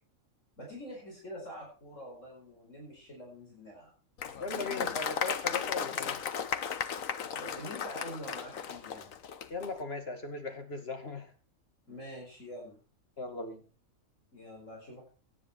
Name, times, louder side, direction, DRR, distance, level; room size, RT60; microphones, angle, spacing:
voice 1, 0.6-3.9 7.2-9.1 11.9-12.8 14.3-15.1, equal, 65° left, -2 dB, 5.1 m, -46 dB
Applause, 4.2-9.7, left 7 dB, 80° left, 1.4 m, -35 dB
voice 2, 4.4-6.2 9.5-11.3 13.2-13.6, left 3 dB, 50° left, 6 dB, 2.3 m, -38 dB
17.0 x 10.0 x 4.4 m, 0.36 s
omnidirectional pair, 1.4 m